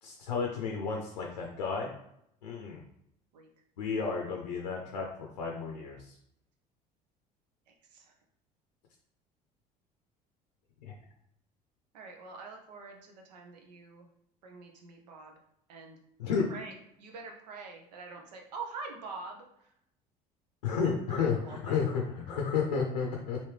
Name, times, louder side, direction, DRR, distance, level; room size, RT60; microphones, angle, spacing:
voice 1, 0.0-1.9 2.4-2.8 3.8-6.2 10.8-10.9 16.2-16.5 20.6-23.4, left 5 dB, 85° left, 0 dB, 0.6 m, -32 dB
voice 2, 7.7-8.1 11.9-14.1 14.4-15.4 15.7-16.0 16.5-19.7 20.8-21.9, right 4 dB, 80° right, 2 dB, 0.7 m, -45 dB
3.4 x 2.6 x 3.2 m, 0.77 s
hypercardioid pair, 65°, 21 cm